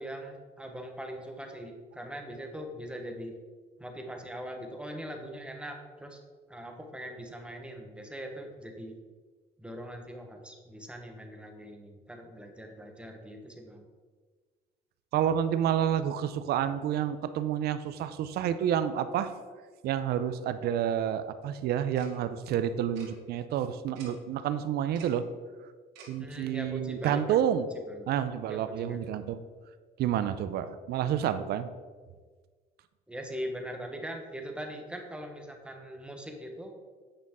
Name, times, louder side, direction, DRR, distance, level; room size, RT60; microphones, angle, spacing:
voice 1, 0.0-3.3 3.8-6.2 6.5-9.0 9.6-13.8 26.2-27.4 27.9-28.1 28.5-29.4 33.1-36.7, equal, 5° right, 3 dB, 1.1 m, -41 dB
voice 2, 15.1-19.3 19.8-25.2 26.1-27.7 28.1-29.5 30.0-31.7, right 9 dB, 70° right, 12 dB, 0.5 m, -29 dB
Tick-tock, 21.9-22.1 22.9-23.1 23.9-24.1 24.9-25.1 25.9-26.1, right 5 dB, 85° right, 1.8 m, -48 dB
8.9 x 5.3 x 3.6 m, 1.5 s
cardioid pair, 110°, 17 cm